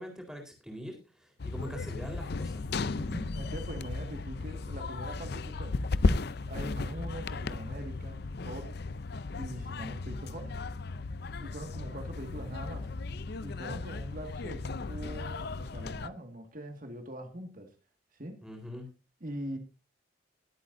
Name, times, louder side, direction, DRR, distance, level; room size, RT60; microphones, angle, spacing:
voice 1, 0.0-2.7 18.4-18.9, equal, 5° right, 4.0 m, -43 dB
sound 1, 1.4-16.1, left 3 dB, 55° left, 0.5 m, -35 dB
voice 2, 3.0-5.8 6.5-8.8 9.3-10.5 11.4-12.9 13.4-17.8 18.1-18.4 19.2-19.6, right 1 dB, 45° right, 1.9 m, -42 dB
21.5 x 8.5 x 2.7 m
head